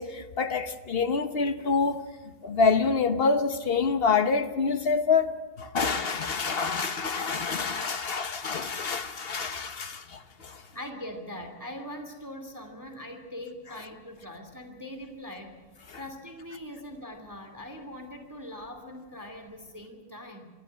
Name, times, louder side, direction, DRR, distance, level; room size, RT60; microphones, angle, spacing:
voice 1, 0.0-2.0 2.4-10.6, left 5 dB, 50° left, 0.7 m, -27 dB
voice 2, 10.7-15.7 16.0-20.5, left 1 dB, 10° right, 2.2 m, -41 dB
24.0 x 13.5 x 9.9 m
omnidirectional pair, 2.3 m